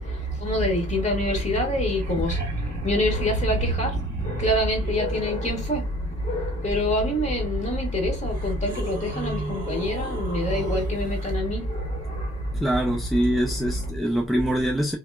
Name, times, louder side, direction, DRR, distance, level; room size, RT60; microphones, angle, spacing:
voice 1, 0.0-12.8 13.1-13.9, equal, 25° left, 1.5 m, -26 dB
sound 1, 1.9-5.0 7.4-7.5 8.2-11.3 13.8-13.9, right 3 dB, 30° right, 1.3 m, -34 dB
voice 2, 9.1-9.6 12.5-15.0, equal, ahead, 0.4 m, -24 dB
2.8 x 2.2 x 2.2 m
cardioid pair, 90°, 30 cm